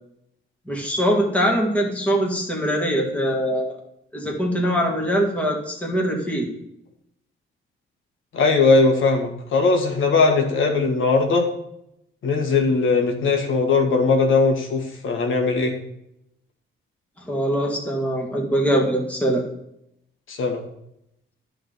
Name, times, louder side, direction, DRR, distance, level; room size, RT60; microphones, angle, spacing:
voice 1, 0.7-3.8 4.1-6.5 17.3-19.4, equal, 5° left, -1 dB, 1.9 m, -22 dB
voice 2, 8.3-11.5 12.2-15.8 20.3-20.6, left 4 dB, 75° left, 2 dB, 1.6 m, -19 dB
11.0 x 3.9 x 6.6 m, 0.79 s
cardioid pair, 135°, 21 cm